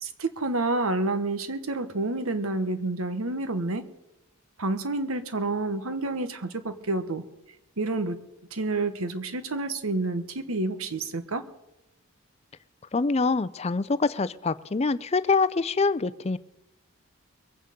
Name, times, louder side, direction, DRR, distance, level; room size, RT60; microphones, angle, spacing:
voice 1, 0.0-3.9 4.6-7.2 7.8-8.2 8.5-11.4, right 2 dB, 80° right, 10 dB, 1.3 m, -29 dB
voice 2, 12.9-16.4, left 4 dB, 30° left, 16 dB, 0.5 m, -25 dB
22.5 x 9.0 x 5.3 m, 0.88 s
head